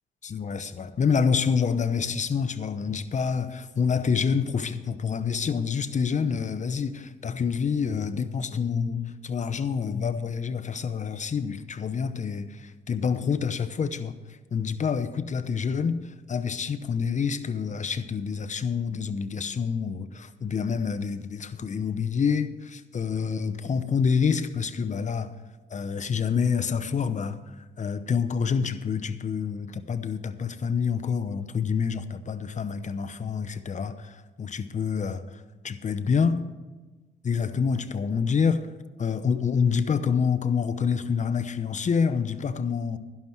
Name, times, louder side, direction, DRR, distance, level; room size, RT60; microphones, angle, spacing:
voice 1, 0.2-14.2 14.5-25.3 25.7-36.4 37.2-38.7 39.0-43.0, left 6 dB, 35° left, 11 dB, 0.8 m, -27 dB
11.5 x 11.5 x 4.6 m, 1.3 s
cardioid pair, 90°, 20 cm